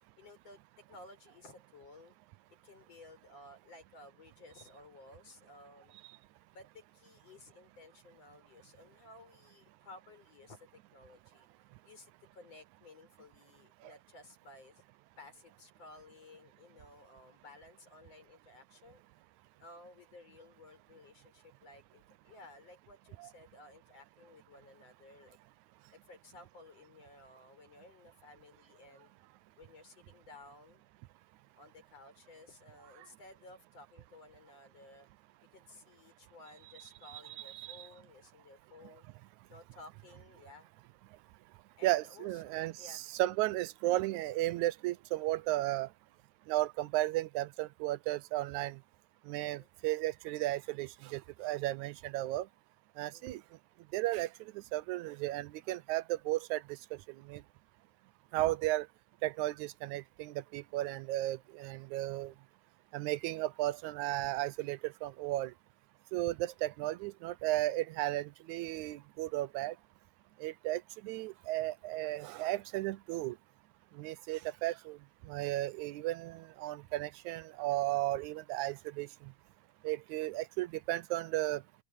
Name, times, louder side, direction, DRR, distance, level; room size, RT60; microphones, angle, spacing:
voice 1, 0.2-2.2 2.6-6.0 6.5-11.5 11.8-14.8 15.2-19.0 19.6-25.4 25.9-29.1 29.6-30.8 31.6-35.1 35.5-39.1 39.5-40.7 41.8-43.0 49.4-49.7 53.1-53.4 62.3-62.4 80.2-80.3, left 2 dB, 55° left, 7.5 m, -56 dB
voice 2, 37.5-37.9 41.8-45.9 46.5-48.8 49.3-52.5 53.0-53.4 53.9-54.3 54.7-56.6 57.3-57.4 58.3-58.9 59.2-62.3 62.9-65.5 66.1-69.7 70.4-73.4 74.0-75.0 75.3-79.1 79.8-81.6, right 16 dB, 85° right, 2.0 m, -34 dB
open air
omnidirectional pair, 3.4 m